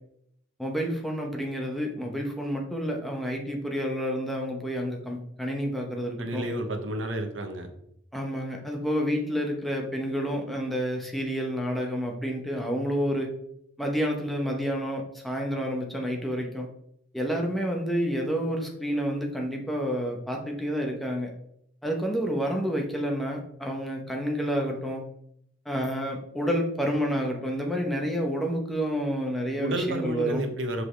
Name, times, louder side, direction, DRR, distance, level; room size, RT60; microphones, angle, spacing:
voice 1, 0.6-6.5 8.1-13.3 13.8-16.7 17.1-21.3 21.8-25.0 25.7-30.4, equal, ahead, 0 dB, 0.9 m, -29 dB
voice 2, 6.2-7.7 29.6-30.8, right 1 dB, 90° right, 5 dB, 1.0 m, -30 dB
6.2 x 4.9 x 3.3 m, 0.73 s
head